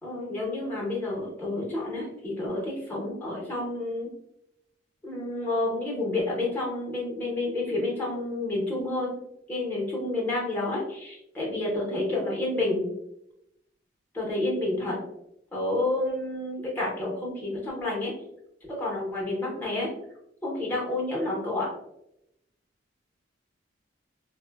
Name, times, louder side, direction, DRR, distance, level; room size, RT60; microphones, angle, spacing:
voice 1, 0.0-4.1 5.0-9.1 9.5-12.9 14.1-15.0 15.5-18.1 18.8-19.9 20.4-21.7, left 2 dB, 10° left, -4 dB, 0.7 m, -29 dB
3.7 x 2.0 x 2.2 m, 0.82 s
head